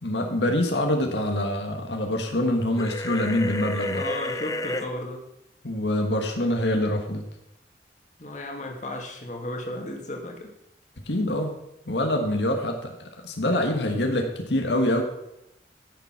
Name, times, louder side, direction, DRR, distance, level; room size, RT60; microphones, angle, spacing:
voice 1, 0.0-4.0 5.6-7.2 11.1-11.5 11.9-12.9 13.2-15.0, left 1 dB, 85° left, 3 dB, 1.6 m, -25 dB
sound 1, 2.8-4.9, left 1 dB, 20° left, 0.7 m, -31 dB
voice 2, 4.0-5.2 8.2-10.5 13.4-13.6, left 1 dB, 45° left, 1 dB, 2.1 m, -34 dB
14.0 x 7.0 x 5.8 m, 0.84 s
head